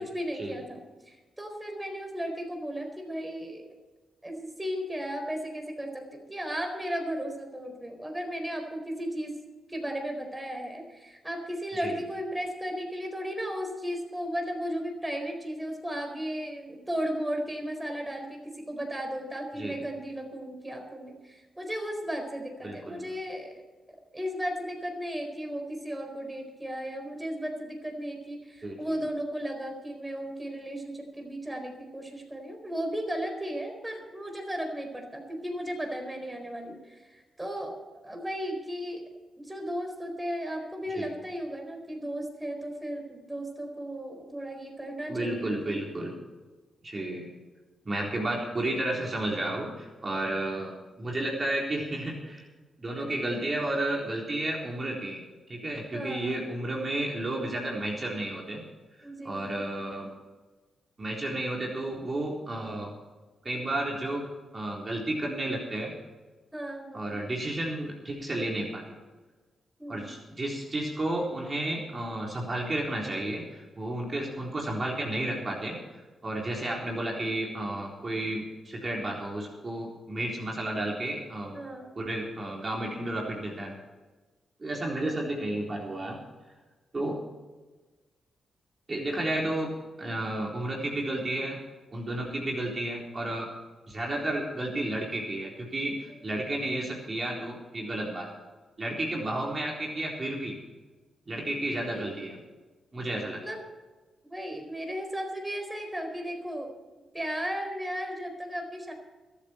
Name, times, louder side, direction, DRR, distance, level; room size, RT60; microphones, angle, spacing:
voice 1, 0.0-3.6 4.2-9.3 9.7-23.6 24.1-37.8 38.0-39.0 39.4-45.8 53.0-53.1 55.9-56.4 59.0-59.6 66.5-67.2 69.8-70.2 81.5-82.0 96.1-96.2 101.9-102.1 103.4-103.6 104.2-106.7 107.1-108.9, equal, 15° right, 3 dB, 4.3 m, -35 dB
voice 2, 22.6-23.0 28.6-28.8 41.0-41.1 45.1-46.2 46.8-47.3 47.9-52.4 52.8-55.2 55.5-58.6 59.2-60.1 61.0-62.9 63.4-64.3 64.5-65.9 66.9-69.0 69.9-75.8 76.2-81.6 82.0-83.8 84.6-86.2 86.9-87.2 88.9-89.7 90.0-91.6 91.9-93.5 93.9-98.3 98.8-100.6 101.3-102.4 102.9-103.4, right 1 dB, 40° right, -2 dB, 3.9 m, -32 dB
24.5 x 8.5 x 4.5 m, 1.3 s
supercardioid pair, 55°, 0 cm